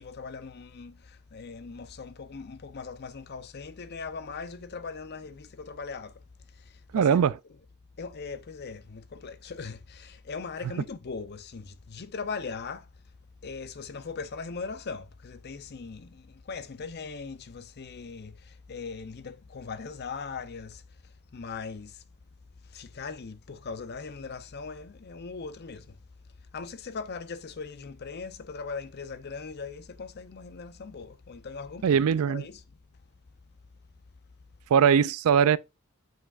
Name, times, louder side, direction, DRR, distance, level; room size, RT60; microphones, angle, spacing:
voice 1, 0.0-6.1 6.9-7.2 8.0-12.9 13.4-20.8 21.3-22.0 22.7-26.0 26.5-32.0 32.3-32.6, left 4 dB, 45° left, 0.6 m, -39 dB
voice 2, 6.9-7.3 31.8-32.4 34.7-35.6, right 7 dB, 70° right, 0.3 m, -21 dB
6.9 x 6.2 x 2.4 m
head